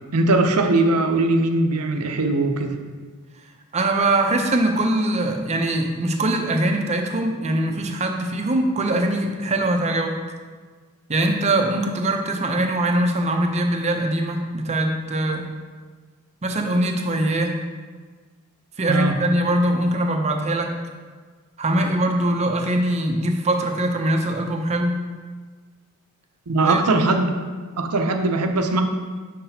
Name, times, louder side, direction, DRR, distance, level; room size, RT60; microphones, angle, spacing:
voice 1, 0.0-2.8 7.7-7.8 18.9-19.2 26.5-27.3 27.8-28.8, right 2 dB, 75° right, 5 dB, 0.6 m, -20 dB
voice 2, 3.7-10.2 11.1-15.4 16.4-17.6 18.8-20.7 21.6-25.0 26.6-26.8, right 1 dB, 30° right, 3 dB, 0.6 m, -22 dB
6.6 x 5.7 x 2.7 m, 1.5 s
head